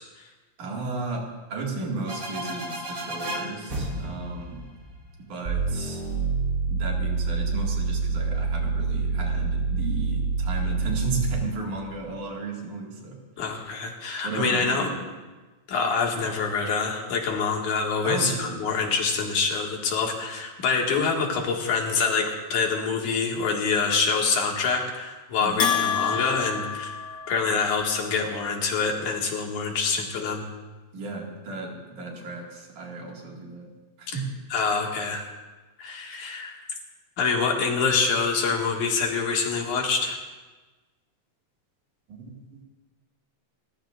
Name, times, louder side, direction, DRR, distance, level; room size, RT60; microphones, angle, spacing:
voice 1, 0.6-4.6 5.3-6.0 6.7-13.2 14.2-15.1 16.2-16.3 18.0-18.6 25.4-25.6 30.9-33.7 34.0-34.2 42.1-42.3, right 3 dB, 80° right, -1 dB, 3.6 m, -34 dB
sound 1, 2.0-5.7, right 1 dB, 35° right, 1.6 m, -34 dB
sound 2, 5.5-11.6, right 4 dB, 15° right, 4.2 m, -26 dB
voice 2, 13.4-14.9 15.7-26.9 27.3-30.4 34.1-34.2 34.5-35.3 35.8-36.8 37.2-40.2, left 5 dB, 90° left, 0 dB, 3.5 m, -26 dB
Bell, 25.6-27.7, left 7 dB, 65° left, 1.1 m, -28 dB
30.0 x 14.5 x 2.5 m, 1.2 s
omnidirectional pair, 3.4 m